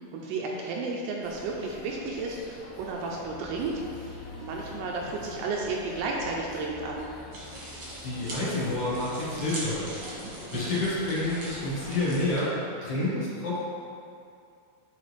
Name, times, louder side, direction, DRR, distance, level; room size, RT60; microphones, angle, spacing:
voice 1, 0.1-7.1, right 3 dB, 85° right, -1 dB, 2.5 m, -33 dB
sound 1, 1.2-12.4, left 2 dB, 90° left, 1.7 m, -46 dB
sound 2, 7.3-12.4, right 1 dB, 60° right, 1.6 m, -40 dB
voice 2, 8.0-9.9 10.5-12.5 12.8-13.6, left 2 dB, 65° left, -9 dB, 3.5 m, -29 dB
10.5 x 3.6 x 3.3 m, 2.5 s
omnidirectional pair, 4.9 m